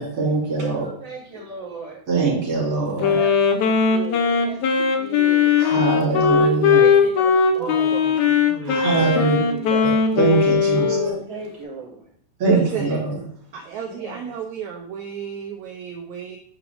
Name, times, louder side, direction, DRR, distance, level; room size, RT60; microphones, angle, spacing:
voice 1, 0.0-0.9 2.1-3.2 5.6-6.9 8.7-9.4 9.8-11.0 12.4-13.2, right 3 dB, 45° right, 3.3 m, -22 dB
voice 2, 0.6-2.0 2.6-8.1 8.6-9.9 10.7-12.0 13.9-14.3, right 2 dB, 10° right, 2.3 m, -35 dB
Wind instrument woodwind instrument, 3.0-11.2, left 6 dB, 75° left, 1.7 m, -19 dB
voice 3, 7.6-8.8 12.5-13.0 13.5-16.4, right 8 dB, 90° right, 1.6 m, -33 dB
8.1 x 4.9 x 3.4 m
omnidirectional pair, 4.2 m